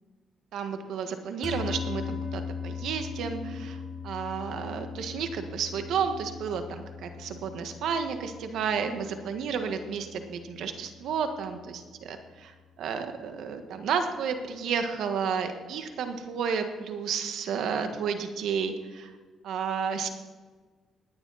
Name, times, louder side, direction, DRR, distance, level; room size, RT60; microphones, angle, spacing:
voice 1, 0.5-19.1 19.4-20.1, right 6 dB, 75° right, 7 dB, 1.5 m, -32 dB
sound 1, 1.4-11.9, left 6 dB, 25° left, 1.6 m, -40 dB
18.0 x 10.5 x 4.2 m, 1.4 s
cardioid pair, 90°, 0 cm